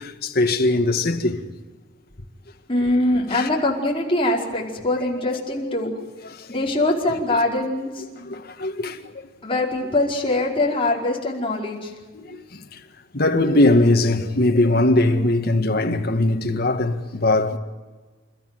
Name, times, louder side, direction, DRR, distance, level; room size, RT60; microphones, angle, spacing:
voice 1, 0.0-1.4 3.3-3.5 5.6-5.7 6.3-6.6 8.1-9.3 12.1-12.8 13.1-17.6, left 2 dB, 55° left, 1.9 m, -21 dB
voice 2, 2.7-5.9 6.5-8.0 9.4-11.9, left 2 dB, 30° left, 4.8 m, -23 dB
29.0 x 14.0 x 9.2 m
head